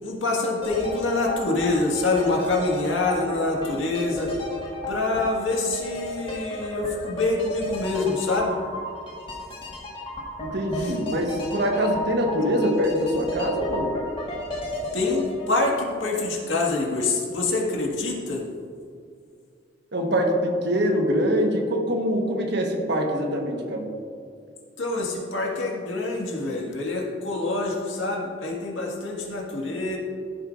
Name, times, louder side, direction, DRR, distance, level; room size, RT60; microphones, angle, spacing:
voice 1, 0.0-4.3 4.9-8.6 10.7-11.0 14.9-18.5 24.8-30.0, left 2 dB, 85° left, -1 dB, 1.8 m, -26 dB
sound 1, 0.6-16.6 16.8-16.9, left 1 dB, 30° left, 1.7 m, -34 dB
voice 2, 10.4-13.9 19.9-23.9, equal, 65° right, 2 dB, 1.3 m, -24 dB
14.5 x 7.9 x 2.6 m, 2.3 s
head